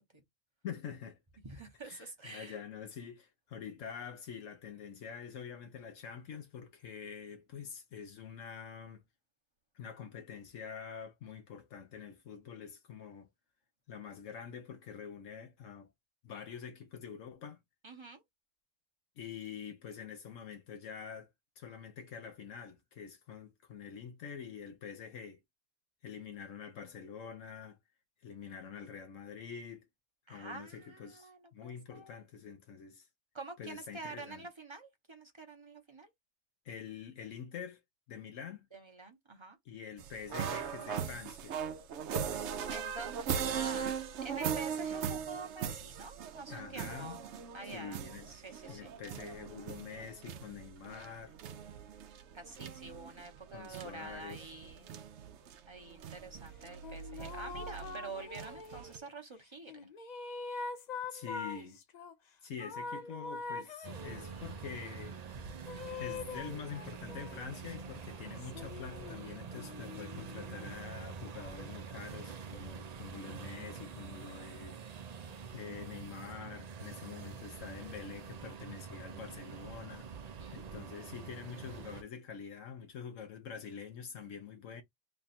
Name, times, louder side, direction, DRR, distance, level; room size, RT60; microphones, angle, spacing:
voice 1, 0.6-1.2 1.8-9.0 9.7-13.3 13.9-15.9 16.2-17.6 19.2-21.3 21.6-25.4 26.0-27.8 28.2-29.9 30.3-33.1 33.6-34.5 36.6-37.8 38.1-38.7 39.6-41.6 46.5-47.2 47.6-48.3 48.7-51.4 53.5-54.5 61.1-61.8 62.4-65.2 66.0-74.8 75.5-80.1 80.5-84.8, left 7 dB, 75° left, 1.1 m, -46 dB
voice 2, 1.4-2.6 17.8-18.2 30.3-32.2 33.3-36.1 38.7-39.6 42.7-43.9 44.2-47.2 47.5-48.0 48.3-48.9 52.3-55.0 55.7-59.9 80.4-80.9, right 3 dB, 25° right, 0.8 m, -47 dB
sound 1, 40.0-59.0, right 7 dB, 70° right, 0.9 m, -40 dB
sound 2, 56.8-59.0 59.7-62.1 62.6-64.5 65.7-67.6 68.4-70.7, left 4 dB, 50° left, 0.5 m, -44 dB
sound 3, 63.8-82.0, right 6 dB, 50° right, 0.4 m, -46 dB
3.5 x 2.3 x 4.1 m
omnidirectional pair, 1.3 m